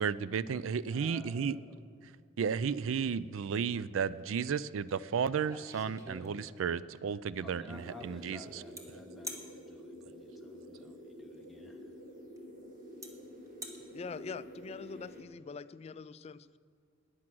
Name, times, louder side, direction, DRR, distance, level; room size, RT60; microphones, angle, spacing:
voice 1, 0.0-1.6 2.4-8.6, right 6 dB, 75° right, 17 dB, 0.4 m, -33 dB
voice 2, 0.9-1.8 7.4-11.9, left 1 dB, ahead, 2 dB, 0.7 m, -53 dB
sound 1, 4.9-5.0 5.3-6.8 8.8-8.9 9.2-9.5 11.3-11.4 12.4-12.5 13.0-13.1 13.5-13.8, right 1 dB, 15° right, 1.2 m, -44 dB
sound 2, 7.7-15.2, equal, 45° right, 1.9 m, -49 dB
voice 3, 13.9-16.6, left 5 dB, 30° left, 15 dB, 0.3 m, -44 dB
13.5 x 9.7 x 6.1 m, 2.1 s
head